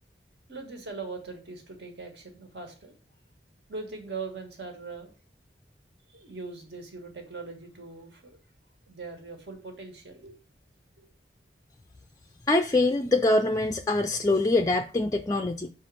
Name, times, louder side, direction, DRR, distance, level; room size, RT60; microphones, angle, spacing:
voice 1, 0.5-2.9 3.7-5.1 6.1-8.4 8.9-10.4 11.0-11.1, right 4 dB, 70° right, 5 dB, 1.8 m, -41 dB
voice 2, 12.5-15.7, left 2 dB, 20° left, 6 dB, 0.4 m, -24 dB
5.6 x 4.3 x 6.3 m, 0.35 s
head